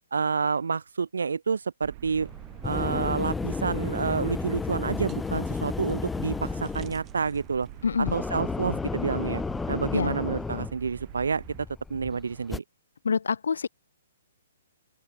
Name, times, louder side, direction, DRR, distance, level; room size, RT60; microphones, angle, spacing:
voice 1, 0.1-2.3 2.6-7.7 8.1-9.4 9.7-11.4 11.9-12.6, right 5 dB, 80° right, 0.4 m, -29 dB
sound 1, 1.8-11.6, right 20 dB, 40° right, 0.8 m, -45 dB
sound 2, 2.2-12.6, left 4 dB, 10° left, 0.5 m, -33 dB
sound 3, 3.9-9.7, right 12 dB, 20° right, 6.6 m, -60 dB
voice 2, 7.8-8.2 9.9-10.2 13.0-13.7, left 6 dB, 75° left, 0.7 m, -26 dB
open air
hypercardioid pair, 135°, 0 cm